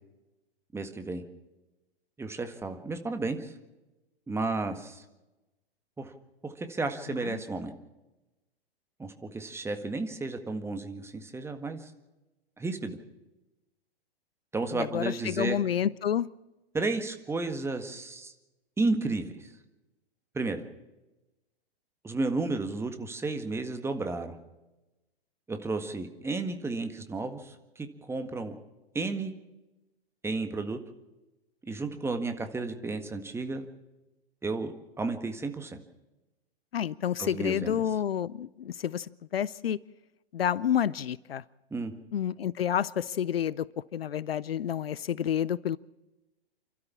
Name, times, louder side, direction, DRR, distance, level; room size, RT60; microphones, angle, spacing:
voice 1, 0.7-1.2 2.2-3.5 4.3-5.0 6.0-6.1 6.4-7.7 9.0-11.9 12.6-13.0 14.5-15.6 16.7-18.3 18.8-19.5 20.3-20.6 22.0-24.3 25.5-28.6 28.9-29.3 30.2-30.8 31.6-33.6 34.4-35.8 37.2-37.8 41.7-41.9, right 3 dB, 10° right, 7 dB, 1.7 m, -32 dB
voice 2, 14.7-16.3 36.7-39.8 40.3-41.4 42.1-45.8, left 9 dB, 70° left, 21 dB, 0.6 m, -29 dB
29.0 x 13.0 x 7.2 m, 1.0 s
figure-of-eight pair, 105°, 31 cm